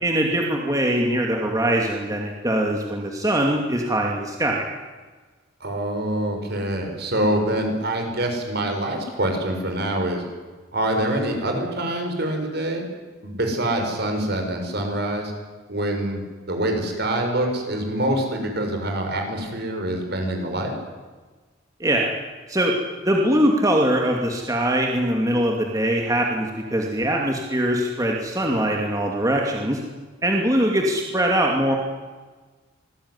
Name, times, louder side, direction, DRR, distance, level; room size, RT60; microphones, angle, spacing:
voice 1, 0.0-4.6 21.8-22.1 22.5-22.8 23.0-29.8 30.2-31.7, right 1 dB, 15° right, 0 dB, 2.5 m, -22 dB
voice 2, 5.6-10.2 10.7-12.8 13.2-15.3 15.7-16.2 16.5-20.7, right 1 dB, 55° right, 4 dB, 6.4 m, -25 dB
26.5 x 20.5 x 9.8 m, 1.4 s
head